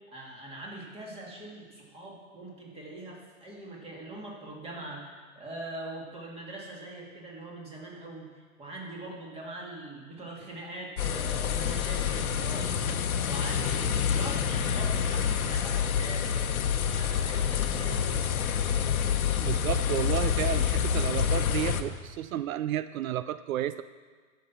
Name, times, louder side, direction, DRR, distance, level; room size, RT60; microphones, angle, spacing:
voice 1, 0.1-5.1 5.4-18.2, right 2 dB, 15° right, -2 dB, 2.2 m, -42 dB
sound 1, 11.0-21.8, left 8 dB, 85° left, 1.0 m, -27 dB
voice 2, 19.4-23.8, right 12 dB, 75° right, 14 dB, 0.5 m, -32 dB
12.0 x 5.9 x 7.2 m, 1.5 s
hypercardioid pair, 140°, 42 cm